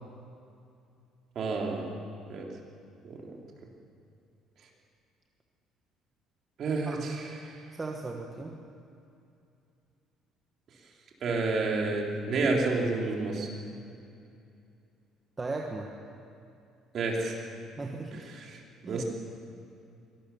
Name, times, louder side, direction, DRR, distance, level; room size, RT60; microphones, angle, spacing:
voice 1, 1.3-1.9 2.3-2.5 3.0-3.4 6.6-7.8 11.2-13.5 16.9-17.5 18.3-18.6 18.9-19.0, right 3 dB, 40° right, 0 dB, 3.3 m, -30 dB
voice 2, 7.8-8.6 15.4-15.9 17.8-18.3 18.8-19.0, right 3 dB, 15° right, 1 dB, 1.3 m, -36 dB
23.0 x 18.5 x 7.0 m, 2.6 s
cardioid pair, 160°, 0 cm